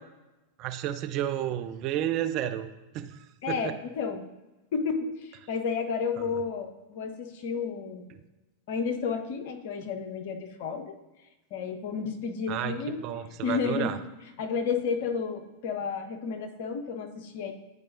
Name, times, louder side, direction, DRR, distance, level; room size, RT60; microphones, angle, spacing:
voice 1, 0.6-2.7 2.9-3.1 3.5-3.7 12.5-14.0, right 11 dB, 40° right, 9 dB, 0.4 m, -31 dB
voice 2, 3.4-4.2 4.7-8.1 8.7-10.9 11.5-13.0 13.4-14.0 14.4-17.5, left 5 dB, 50° left, 7 dB, 0.8 m, -31 dB
10.0 x 4.7 x 2.6 m, 1.1 s
figure-of-eight pair, 90°, 0 cm